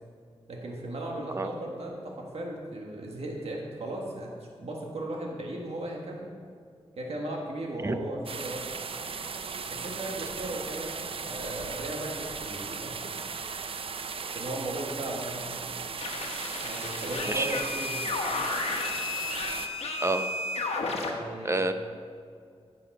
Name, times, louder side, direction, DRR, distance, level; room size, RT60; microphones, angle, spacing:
voice 1, 0.5-4.3 4.6-6.3 7.0-8.6 9.7-13.0 14.3-15.5 16.6-18.0 20.9-21.7, right 1 dB, 80° right, -1 dB, 1.7 m, -36 dB
voice 2, 1.4-1.5 7.8-8.0 17.3-17.5 20.0-20.3 21.4-21.7, right 2 dB, 25° right, 8 dB, 0.7 m, -27 dB
sound 1, 8.2-19.7, right 5 dB, 60° right, 0.5 m, -37 dB
sound 2, 16.0-21.1, left 3 dB, 85° left, 1.2 m, -33 dB
10.5 x 7.4 x 5.4 m, 2.2 s
wide cardioid pair, 90°, 10 cm